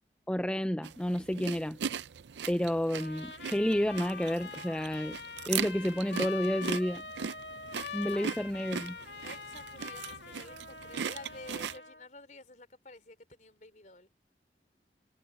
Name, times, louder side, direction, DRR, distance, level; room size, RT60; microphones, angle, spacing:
voice 1, 0.3-1.8 2.5-5.2 5.5-7.0 7.9-9.0, equal, 5° left, 0.4 m, -30 dB
sound 1, 0.8-11.8, right 7 dB, 90° right, 0.5 m, -39 dB
Trumpet, 2.9-12.0, left 5 dB, 80° left, 2.2 m, -44 dB
voice 2, 9.2-14.1, left 2 dB, 45° left, 4.1 m, -50 dB
head